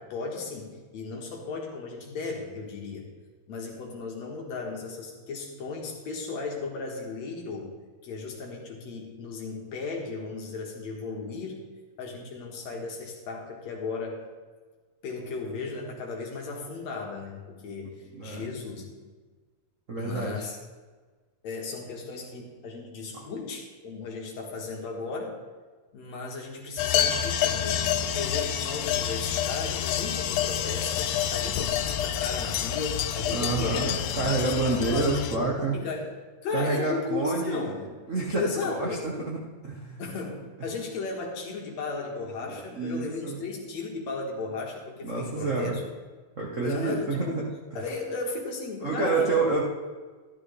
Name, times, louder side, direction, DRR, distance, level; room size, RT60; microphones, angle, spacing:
voice 1, 0.0-3.1 3.5-7.7 8.0-11.6 12.0-14.2 15.0-17.9 18.2-19.1 20.0-20.6 21.4-25.4 25.9-36.1 36.4-37.8 38.3-39.1 40.0-45.8 46.6-47.4 47.7-49.4, left 4 dB, 65° left, 0 dB, 2.8 m, -35 dB
voice 2, 18.1-18.5 19.9-20.5 33.3-35.7 36.5-37.7 38.1-40.0 42.5-43.4 45.0-45.8 46.4-47.4 48.8-49.6, right 3 dB, 70° right, -3 dB, 0.7 m, -28 dB
sound 1, 26.8-35.4, left 10 dB, 85° left, 2.1 m, -28 dB
13.0 x 12.5 x 3.3 m, 1.4 s
omnidirectional pair, 3.5 m